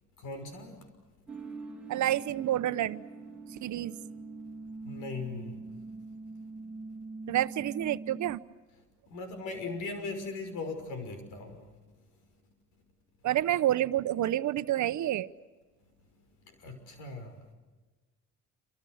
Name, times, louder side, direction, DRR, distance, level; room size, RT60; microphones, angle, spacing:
voice 1, 0.2-0.8 4.8-5.5 9.1-11.7 16.6-17.3, left 3 dB, 90° left, 7 dB, 5.8 m, -38 dB
sound 1, 1.3-8.4, right 3 dB, 5° right, 3.6 m, -43 dB
voice 2, 1.9-3.0 3.6-4.0 7.3-8.4 13.2-15.3, right 13 dB, 70° right, 14 dB, 1.0 m, -28 dB
27.5 x 25.5 x 6.5 m, 1.3 s
cardioid pair, 90°, 30 cm